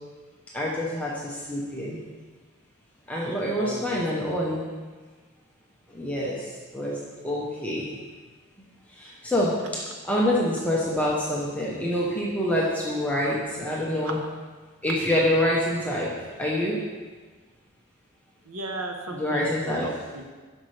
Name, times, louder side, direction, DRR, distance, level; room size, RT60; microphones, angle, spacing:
voice 1, 0.5-2.0 3.1-4.6 5.9-6.4 6.7-7.0 7.2-7.9 9.0-14.2 14.8-16.1 16.4-16.8 19.1-19.9, left 1 dB, 5° left, -5 dB, 0.8 m, -26 dB
voice 2, 3.6-4.0 13.2-13.4 14.0-14.1 18.4-20.2, right 2 dB, 80° right, 3 dB, 1.0 m, -35 dB
9.8 x 6.5 x 3.3 m, 1.4 s
head